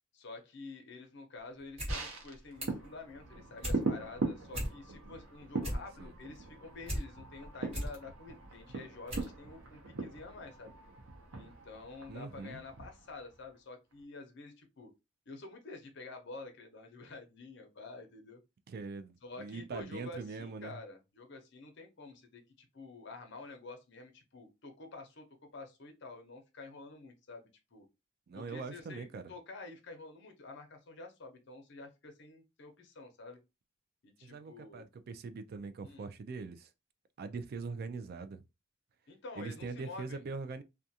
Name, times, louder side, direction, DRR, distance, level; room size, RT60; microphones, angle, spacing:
voice 1, 0.1-10.8 11.3-14.9 15.3-18.4 19.2-25.2 25.5-27.8 28.3-33.4 34.0-34.9 35.8-36.1 39.1-40.2, left 3 dB, 60° left, 0.7 m, -49 dB
sound 1, 1.6-2.0 2.3-2.9 3.3-3.8 4.2-4.3 4.5-5.1 5.4-7.0 7.4-8.0 8.5-8.6 9.1-9.3 9.6-9.7, equal, 30° right, 1.3 m, -37 dB
sound 2, 1.9-13.6 13.9-14.0, right 3 dB, 90° right, 0.7 m, -41 dB
voice 2, 5.7-6.1 12.1-12.6 18.7-20.8 28.3-29.3 34.2-36.7 37.2-38.4 39.4-40.6, right 4 dB, 50° right, 0.3 m, -42 dB
2.4 x 2.2 x 2.7 m
head